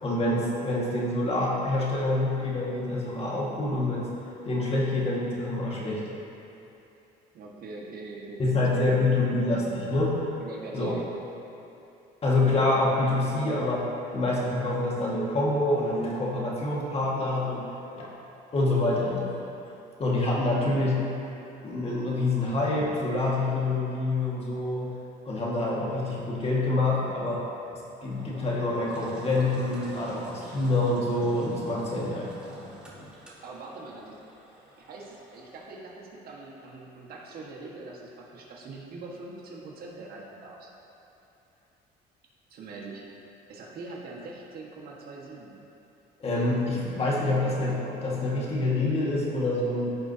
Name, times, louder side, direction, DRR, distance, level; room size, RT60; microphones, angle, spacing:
voice 1, 0.0-4.0 4.5-6.0 8.4-10.2 10.7-10.9 12.2-13.9 14.1-17.6 18.0-18.1 18.5-19.5 20.0-21.0 21.6-24.9 25.2-27.4 27.7-32.6 33.0-33.1 46.2-49.9, left 2 dB, 35° left, -5 dB, 1.8 m, -26 dB
voice 2, 7.3-9.3 10.4-11.1 33.4-34.2 34.8-40.7 42.5-43.0 43.5-45.5, right 3 dB, 65° right, -3 dB, 1.5 m, -42 dB
Engine, 28.1-35.7, right 1 dB, 5° right, 1.6 m, -48 dB
14.5 x 4.9 x 2.8 m, 2.9 s
cardioid pair, 110°, 17 cm